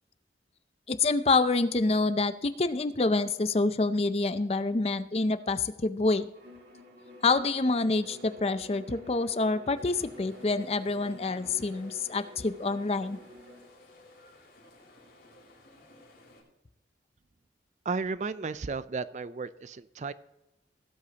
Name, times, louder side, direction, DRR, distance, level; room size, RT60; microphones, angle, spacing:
voice 1, 0.9-6.3 7.2-13.2, left 3 dB, 35° left, 13 dB, 0.5 m, -27 dB
Bowed string instrument, 6.3-13.7, left 1 dB, 65° right, 1.9 m, -50 dB
sound 1, 9.8-16.4, left 1 dB, 65° left, 4.4 m, -56 dB
voice 2, 17.9-20.1, right 4 dB, 40° right, 15 dB, 0.4 m, -34 dB
18.0 x 8.1 x 2.9 m, 0.94 s
head